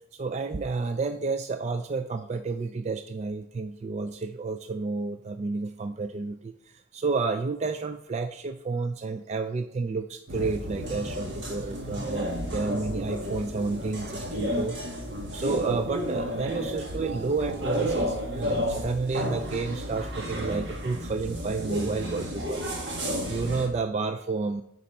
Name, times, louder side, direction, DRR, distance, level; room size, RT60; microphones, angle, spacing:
voice 1, 0.1-15.0 15.3-24.6, right 3 dB, 35° right, 8 dB, 0.3 m, -31 dB
sound 1, 10.3-23.7, equal, 55° right, 1.4 m, -32 dB
8.8 x 4.1 x 5.3 m, 0.80 s
head